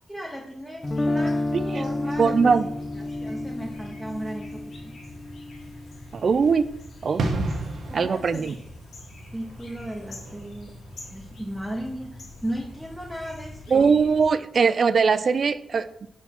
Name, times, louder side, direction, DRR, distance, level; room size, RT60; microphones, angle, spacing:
voice 1, 0.1-1.4 1.7-2.6 3.0-4.9 7.9-8.5 9.3-10.7 11.1-13.9, equal, ahead, -1 dB, 0.8 m, -35 dB
sound 1, 0.8-14.3, left 1 dB, 75° left, 2.0 m, -45 dB
Guitar, 0.8-6.8, left 2 dB, 30° left, 0.6 m, -30 dB
voice 2, 1.5-1.8 2.2-2.7 6.1-6.7 7.0-7.2 7.9-8.5 13.7-16.1, right 5 dB, 55° right, 14 dB, 0.4 m, -21 dB
sound 2, 7.2-13.7 13.9-14.1, right 2 dB, 85° right, 1.0 m, -34 dB
5.6 x 4.3 x 5.8 m, 0.77 s
wide cardioid pair, 105°, 0 cm